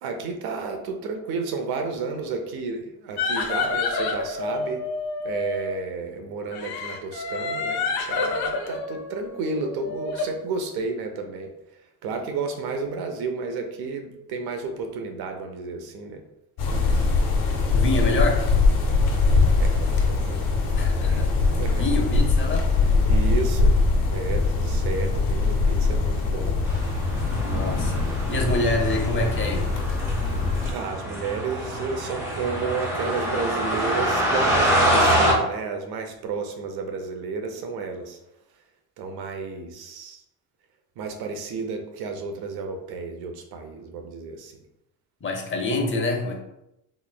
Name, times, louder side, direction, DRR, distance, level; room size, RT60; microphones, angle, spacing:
voice 1, 0.0-4.8 5.2-11.5 12.0-16.2 19.6-20.4 21.0-21.2 21.5-21.9 23.1-23.8 24.1-26.6 30.7-38.2 39.0-40.2 41.0-44.5, right 4 dB, 85° right, 5 dB, 0.7 m, -32 dB
sound 1, 3.2-5.8 6.5-10.3, left 4 dB, 85° left, 0.6 m, -28 dB
sound 2, 16.6-30.7, left 3 dB, 65° left, 1.2 m, -22 dB
voice 2, 17.7-18.4 20.8-21.3 21.7-22.7 27.4-28.0 28.3-29.6 45.2-46.4, left 2 dB, 35° left, 2 dB, 0.8 m, -26 dB
sound 3, 26.6-35.3, equal, 5° right, 1.4 m, -26 dB
4.1 x 3.1 x 2.2 m, 0.86 s
cardioid pair, 100°, 36 cm